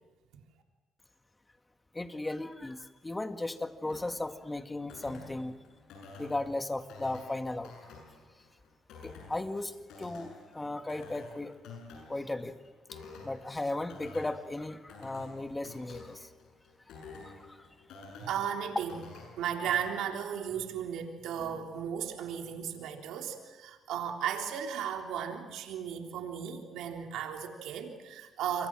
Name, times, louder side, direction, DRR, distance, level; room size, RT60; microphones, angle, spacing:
voice 1, 1.9-5.5 6.2-8.0 9.0-11.6 12.1-12.6 12.9-16.3 17.2-17.7, left 2 dB, 15° left, 7 dB, 2.0 m, -36 dB
sound 1, 3.9-19.9, left 4 dB, 85° left, 7.5 m, -51 dB
voice 2, 18.2-19.0 19.4-28.7, right 8 dB, 85° right, 2 dB, 3.5 m, -35 dB
28.5 x 24.0 x 6.3 m, 1.3 s
cardioid pair, 90°, 0 cm